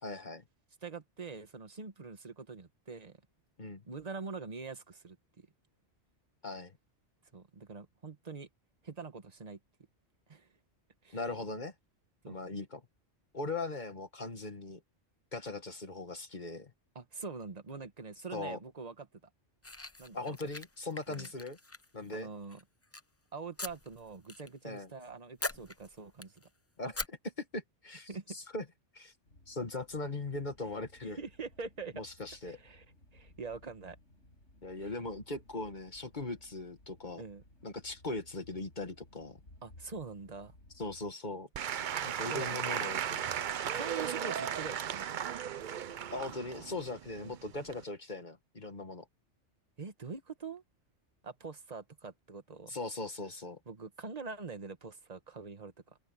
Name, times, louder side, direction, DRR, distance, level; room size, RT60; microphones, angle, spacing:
voice 1, 0.0-0.4 3.6-3.8 6.4-6.7 11.1-11.7 12.3-12.8 13.3-14.8 15.3-16.7 18.3-18.6 20.1-21.6 21.9-22.3 24.6-24.9 26.8-28.6 28.9-29.1 29.5-31.2 31.9-32.6 34.6-37.2 37.6-39.4 40.8-41.5 42.0-43.2 46.1-49.1 52.7-53.6, left 2 dB, 40° left, 2.1 m, -39 dB
voice 2, 0.8-3.2 3.8-5.5 7.3-8.5 8.8-9.6 10.3-10.5 11.0-11.2 12.2-12.4 16.9-19.1 20.0-20.4 21.1-21.3 22.1-22.6 23.3-26.5 28.1-28.2 31.2-32.0 32.4-32.8 33.1-34.0 34.8-34.9 37.2-37.4 39.6-40.5 42.3-42.6 43.7-45.3 47.2-47.4 49.8-50.6 51.2-52.8 53.7-56.0, right 4 dB, 35° right, 1.4 m, -44 dB
sound 1, 19.6-22.1 22.5-23.0 23.6-24.5 24.8-25.1 25.4-26.5 26.9-27.1, left 2 dB, 15° left, 0.6 m, -42 dB
sound 2, 29.2-41.1, left 1 dB, 80° left, 6.3 m, -60 dB
Applause / Crowd, 41.5-47.8, right 9 dB, 50° right, 0.6 m, -36 dB
open air
omnidirectional pair, 1.2 m